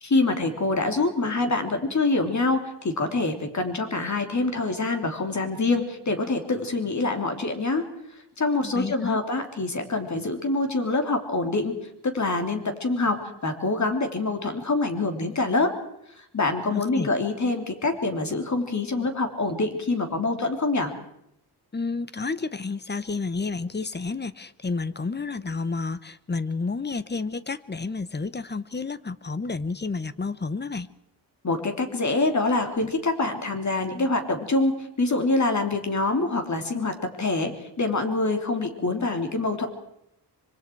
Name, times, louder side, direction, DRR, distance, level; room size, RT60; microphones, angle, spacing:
voice 1, 0.0-7.9 8.4-15.7 16.2-20.9 31.4-39.7, left 3 dB, 40° left, 5 dB, 3.4 m, -25 dB
voice 2, 8.6-9.2 16.7-17.1 21.7-30.9, left 4 dB, 25° left, 15 dB, 0.9 m, -30 dB
25.5 x 24.0 x 4.7 m, 0.77 s
wide cardioid pair, 115°, 41 cm